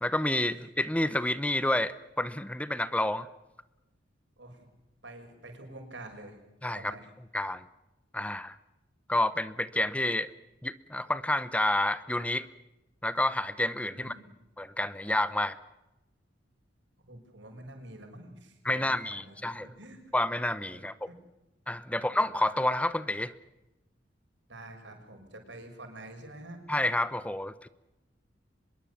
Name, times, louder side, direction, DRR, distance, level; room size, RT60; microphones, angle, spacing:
voice 1, 0.0-3.3 6.6-6.9 7.3-7.6 8.1-8.6 9.1-10.3 10.6-12.5 13.0-14.1 14.6-15.6 18.6-19.7 20.1-21.1 21.7-23.3 26.7-27.7, left 1 dB, 5° left, 15 dB, 0.8 m, -29 dB
voice 2, 4.4-4.7 5.0-6.4 6.7-7.1 13.9-14.3 17.1-20.2 20.7-20.8 21.1-21.2 21.9-22.2 24.5-26.6, right 1 dB, 70° right, 4 dB, 6.6 m, -47 dB
25.0 x 22.0 x 7.3 m, 0.97 s
head